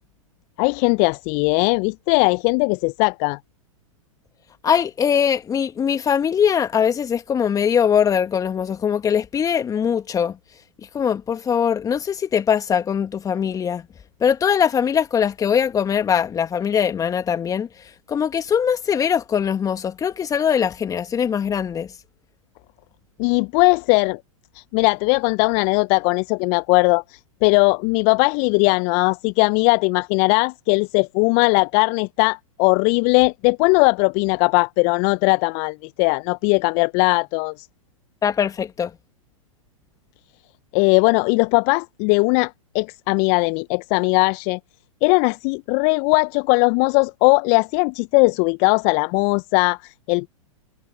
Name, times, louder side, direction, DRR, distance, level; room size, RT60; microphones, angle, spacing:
voice 1, 0.6-3.4 23.2-24.2 24.5-37.7 40.7-44.6 45.0-50.3, left 35 dB, 40° left, 0.9 m, -19 dB
voice 2, 4.6-10.4 10.9-13.8 14.2-17.7 18.1-21.9 38.2-38.9, left 8 dB, 20° left, 2.2 m, -21 dB
figure-of-eight pair, 100°, 17 cm